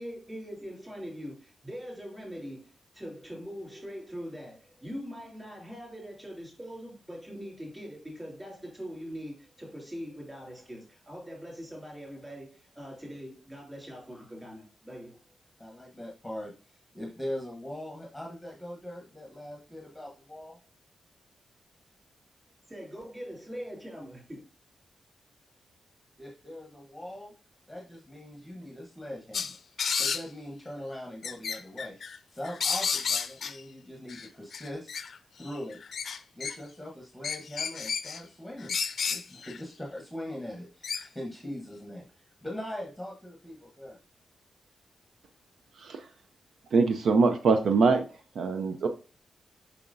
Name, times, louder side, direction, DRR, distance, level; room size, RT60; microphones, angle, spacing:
voice 1, 0.0-15.2 22.7-24.4, equal, 15° right, -1 dB, 3.3 m, -42 dB
voice 2, 15.6-20.6 26.2-27.3 27.7-29.5 30.0-32.0 32.3-34.9 35.4-35.8 36.3-38.7 39.1-44.0, left 1 dB, ahead, -2 dB, 1.1 m, -41 dB
sound 1, 29.3-30.2 31.2-32.2 32.4-33.6 34.1-35.2 35.4-36.6 37.2-38.2 38.6-39.6 40.8-41.1, left 6 dB, 55° left, 0.5 m, -31 dB
voice 3, 46.7-48.0 48.4-48.9, right 4 dB, 70° right, 7 dB, 0.6 m, -23 dB
6.9 x 5.7 x 2.6 m, 0.35 s
wide cardioid pair, 175°, 0 cm